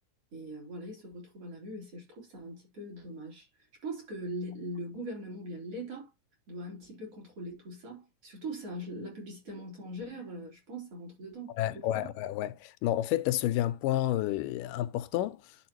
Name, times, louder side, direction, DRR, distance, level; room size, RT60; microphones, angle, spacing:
voice 1, 0.3-3.5 3.8-6.1 6.5-12.1, right 1 dB, 45° right, 4.1 m, -41 dB
voice 2, 11.6-15.6, left 13 dB, 85° left, 2.2 m, -30 dB
11.5 x 4.6 x 2.9 m
omnidirectional pair, 3.8 m